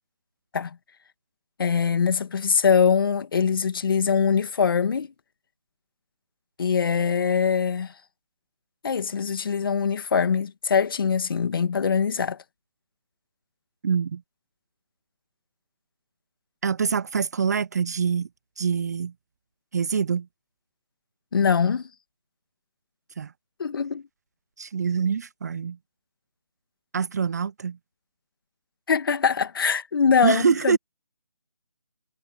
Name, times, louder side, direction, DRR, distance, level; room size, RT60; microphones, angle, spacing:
voice 1, 1.6-5.1 6.6-7.9 8.8-12.4 21.3-21.9 23.6-24.0 28.9-30.8, left 6 dB, 45° left, 1.9 m, -23 dB
voice 2, 13.8-14.2 16.6-18.3 18.6-19.1 19.7-20.3 23.2-23.3 24.6-25.8 26.9-27.8 30.2-30.8, right 6 dB, 35° right, 0.5 m, -25 dB
figure-of-eight pair, 160°, 16 cm